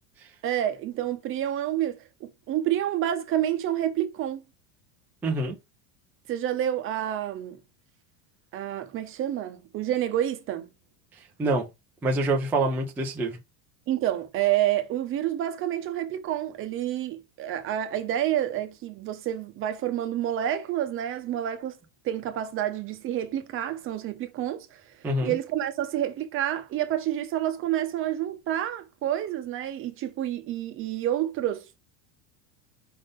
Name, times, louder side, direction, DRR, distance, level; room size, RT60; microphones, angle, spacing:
voice 1, 0.4-4.4 6.3-7.6 8.5-10.7 13.9-21.8 22.0-24.8 25.2-31.8, right 12 dB, 25° right, 0.8 m, -29 dB
voice 2, 5.2-5.6 11.4-11.7 12.0-13.4 25.0-25.3, right 2 dB, 5° right, 0.4 m, -25 dB
5.2 x 3.7 x 5.1 m
supercardioid pair, 160°, 49 cm